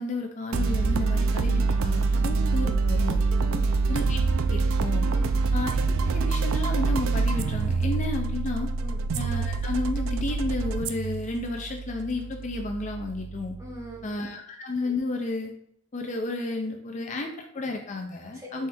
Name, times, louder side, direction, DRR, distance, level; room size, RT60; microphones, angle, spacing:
voice 1, 0.0-3.3 3.9-4.2 4.5-5.1 5.5-8.7 9.2-13.6 14.0-15.5 15.9-18.7, left 2 dB, 35° left, 3 dB, 0.4 m, -32 dB
Prelude of editing, 0.5-13.9, right 4 dB, 80° right, 0.3 m, -26 dB
voice 2, 3.4-3.8 5.1-5.4 8.8-9.1 13.6-14.3 18.3-18.7, equal, 15° right, -2 dB, 0.9 m, -41 dB
4.2 x 3.2 x 3.5 m, 0.70 s
head